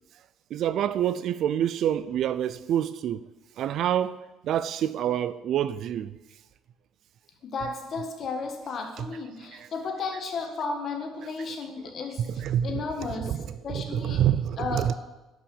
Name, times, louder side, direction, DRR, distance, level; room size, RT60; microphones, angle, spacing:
voice 1, 0.5-3.3 3.6-4.2 4.4-6.2 9.0-9.1 9.5-9.7 12.2-12.8 13.1-13.4 13.7-14.9, right 10 dB, 45° right, 0.3 m, -27 dB
voice 2, 7.4-12.2 12.6-13.4 13.6-14.3 14.6-14.9, left 4 dB, 35° left, 1.6 m, -33 dB
11.0 x 6.1 x 7.1 m
cardioid pair, 175°, 0 cm